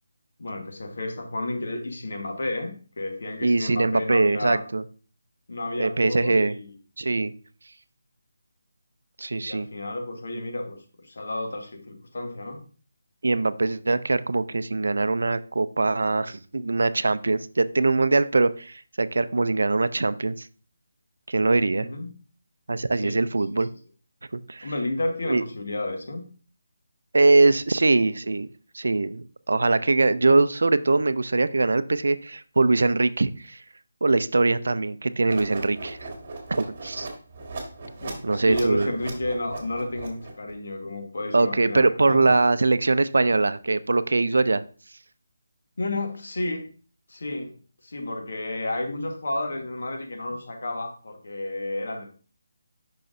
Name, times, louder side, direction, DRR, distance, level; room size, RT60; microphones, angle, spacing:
voice 1, 0.4-4.6 5.5-6.7 9.3-12.6 21.8-22.1 23.0-23.2 23.5-23.6 24.6-26.2 38.0-42.3 45.8-46.7 47.1-52.1, left 2 dB, 70° left, 3 dB, 1.4 m, -31 dB
voice 2, 3.4-4.8 5.8-6.5 7.0-7.3 9.2-9.7 13.2-20.5 21.3-21.9 22.7-23.7 24.5-24.7 25.3-25.4 27.1-28.5 28.7-33.6 34.0-36.1 36.5-37.1 38.2-38.9 41.3-44.6, right 3 dB, 80° right, 14 dB, 0.4 m, -22 dB
sound 1, 35.2-40.5, right 3 dB, 35° right, 1.7 m, -38 dB
6.4 x 5.7 x 2.6 m, 0.39 s
figure-of-eight pair, 160°, 0 cm